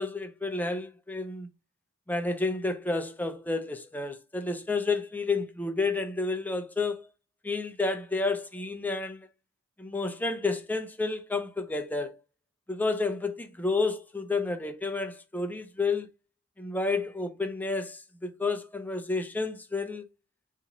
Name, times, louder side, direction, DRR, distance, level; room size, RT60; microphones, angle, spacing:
voice 1, 0.0-1.5 2.1-7.1 7.4-9.2 9.8-12.2 12.7-16.1 16.6-20.1, left 3 dB, 10° left, 0.3 m, -30 dB
2.9 x 2.5 x 3.9 m
head